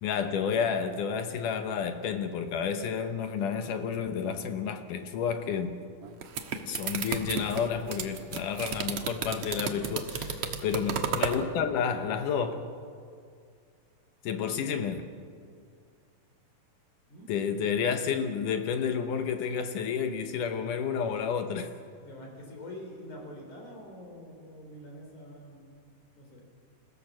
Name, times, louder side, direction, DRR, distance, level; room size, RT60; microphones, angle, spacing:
voice 1, 0.0-5.8 6.7-12.7 14.2-15.1 17.3-21.7, left 7 dB, 70° left, 2.2 m, -30 dB
sound 1, 6.0-11.4, right 6 dB, 60° right, 1.6 m, -33 dB
voice 2, 14.3-14.7 17.1-17.3 22.0-25.7 26.1-26.4, left 1 dB, 50° left, 5.1 m, -46 dB
27.0 x 16.5 x 7.5 m
omnidirectional pair, 4.5 m